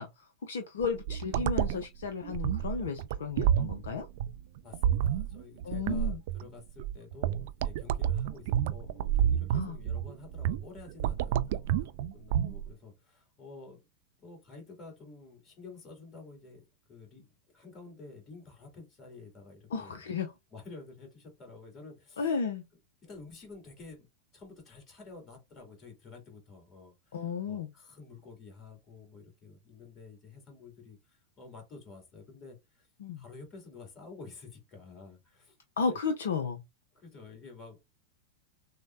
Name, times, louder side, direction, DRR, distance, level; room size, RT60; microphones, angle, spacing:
voice 1, 0.0-4.1 5.6-6.2 9.5-9.8 19.7-20.3 22.2-22.6 27.1-27.7 33.0-33.2 35.8-36.6, left 5 dB, 60° left, 0.5 m, -33 dB
sound 1, 0.8-12.7, right 10 dB, 50° right, 0.3 m, -30 dB
voice 2, 4.6-13.8 14.2-20.1 20.5-22.3 23.0-24.1 24.3-32.9 33.2-35.6 35.8-36.0 36.9-37.9, left 4 dB, 25° left, 2.3 m, -50 dB
6.2 x 2.1 x 2.6 m
figure-of-eight pair, 90°, 0 cm